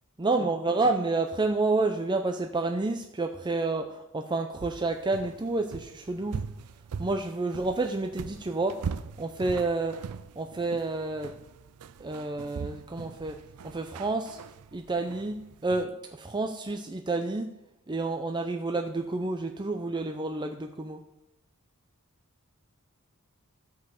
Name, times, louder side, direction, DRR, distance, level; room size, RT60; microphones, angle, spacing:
voice 1, 0.2-6.4 7.0-10.0 10.4-11.3 12.0-14.4 14.7-17.5 17.9-21.0, right 3 dB, 20° right, 4 dB, 0.6 m, -29 dB
sound 1, 4.6-15.9, right 5 dB, 90° right, 0.5 m, -41 dB
12.5 x 5.4 x 6.5 m, 0.87 s
head